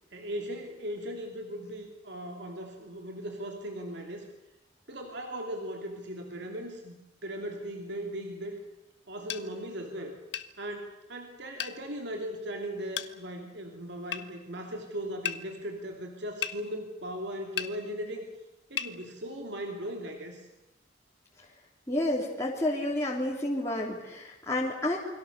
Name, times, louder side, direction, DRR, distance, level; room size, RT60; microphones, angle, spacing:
voice 1, 0.1-4.3 4.9-7.0 7.2-8.6 9.1-10.2 10.6-18.3 18.7-20.5, equal, 65° right, 2 dB, 2.9 m, -38 dB
sound 1, 9.3-9.5 10.3-10.5 11.6-11.8 13.0-13.1 14.1-14.3 15.3-15.4 16.4-16.6 17.6-17.7 18.8-18.9, left 9 dB, 65° left, 1.3 m, -33 dB
voice 2, 21.9-25.0, left 1 dB, 15° left, -4 dB, 3.2 m, -30 dB
29.0 x 23.0 x 6.7 m, 0.99 s
head